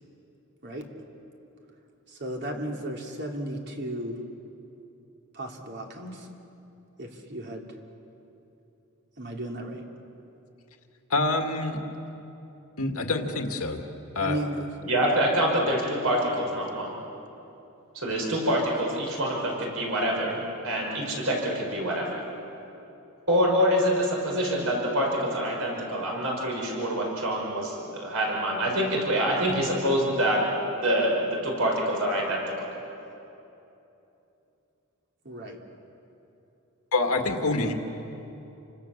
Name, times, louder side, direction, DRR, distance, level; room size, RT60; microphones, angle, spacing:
voice 1, 2.1-4.2 5.3-6.3 7.0-7.7 9.2-9.8 14.2-14.7 35.2-35.6, right 1 dB, 50° right, 1 dB, 3.3 m, -34 dB
voice 2, 11.1-11.8 12.8-13.8 14.2-14.4 36.9-37.7, left 2 dB, 75° left, 4 dB, 2.0 m, -26 dB
voice 3, 14.9-16.9 17.9-22.2 23.3-30.4 30.8-32.6, equal, 70° right, -1 dB, 5.8 m, -26 dB
29.5 x 26.0 x 7.3 m, 2.9 s
head